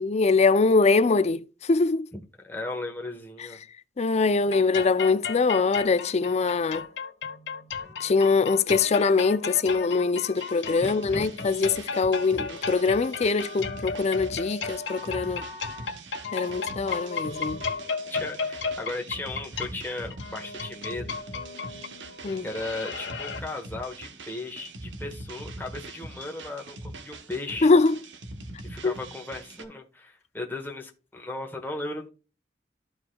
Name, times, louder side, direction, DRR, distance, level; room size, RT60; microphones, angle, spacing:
voice 1, 0.0-2.1 4.0-6.9 8.0-15.5 16.3-17.6 22.2-22.5 27.6-28.0 28.8-28.9, left 4 dB, 40° left, 0.4 m, -23 dB
voice 2, 2.4-3.6 10.8-11.3 18.1-21.2 22.4-27.7 28.6-32.1, left 2 dB, 10° left, 1.2 m, -36 dB
sound 1, 4.5-23.4, left 5 dB, 90° left, 1.2 m, -35 dB
sound 2, 10.4-29.6, right 2 dB, 85° right, 1.1 m, -43 dB
13.0 x 4.8 x 2.3 m
head